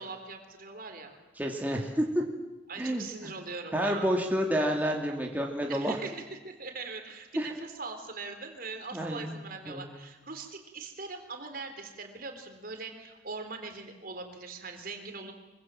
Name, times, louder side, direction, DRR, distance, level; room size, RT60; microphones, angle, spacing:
voice 1, 0.0-1.2 2.7-4.1 5.7-15.3, right 4 dB, 50° right, 6 dB, 3.8 m, -41 dB
voice 2, 1.4-2.2 2.8-3.0 3.7-6.0 7.4-7.5 8.9-9.4 9.7-9.9, equal, 10° right, 0 dB, 2.5 m, -29 dB
25.0 x 24.0 x 7.7 m, 1.1 s
head